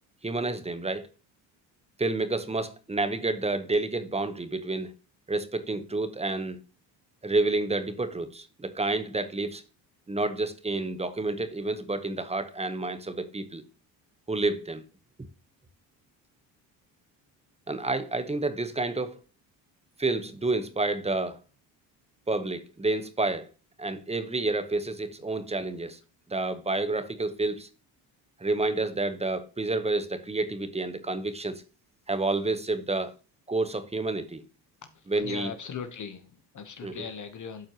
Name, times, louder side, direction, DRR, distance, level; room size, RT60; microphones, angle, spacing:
voice 1, 0.2-1.1 2.0-4.9 5.3-6.6 7.2-9.6 10.1-13.6 14.3-14.8 17.7-19.2 20.0-21.4 22.3-23.5 23.8-26.0 26.3-27.7 28.4-31.6 32.1-33.1 33.5-34.4 35.1-35.5 36.8-36.9, right 2 dB, 15° right, 1.0 m, -29 dB
voice 2, 34.8-37.7, left 6 dB, 40° left, 1.1 m, -39 dB
12.5 x 4.4 x 3.0 m
supercardioid pair, 80°, 46 cm